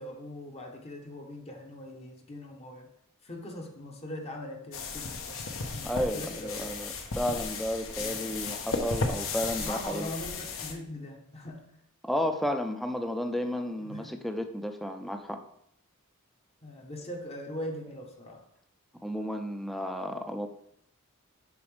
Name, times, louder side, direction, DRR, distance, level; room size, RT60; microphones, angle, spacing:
voice 1, 0.0-2.9 3.2-6.8 7.3-7.4 8.0-8.3 9.6-11.7 13.8-14.2 16.6-18.4, left 1 dB, 30° left, 2 dB, 0.8 m, -41 dB
sound 1, 4.7-10.7, left 4 dB, 65° left, 0.8 m, -35 dB
voice 2, 5.8-10.1 12.0-15.4 19.0-20.5, equal, ahead, 6 dB, 0.4 m, -32 dB
7.0 x 5.1 x 3.2 m, 0.72 s
head